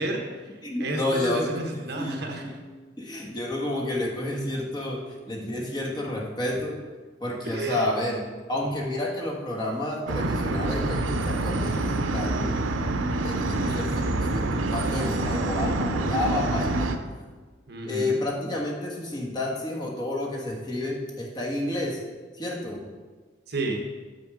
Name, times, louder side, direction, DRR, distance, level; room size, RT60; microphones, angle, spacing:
voice 1, 0.0-2.5 7.4-7.9 17.7-18.2 23.5-23.8, right 2 dB, 55° right, 2 dB, 1.1 m, -31 dB
voice 2, 0.6-1.5 2.0-2.6 3.0-6.8 7.2-8.2 8.5-12.6 13.2-17.0 17.8-22.0 22.3-22.9, left 1 dB, 20° left, -3 dB, 1.4 m, -30 dB
sound 1, 10.1-17.0, right 2 dB, 80° right, 0.6 m, -27 dB
6.9 x 6.6 x 4.9 m, 1.4 s
head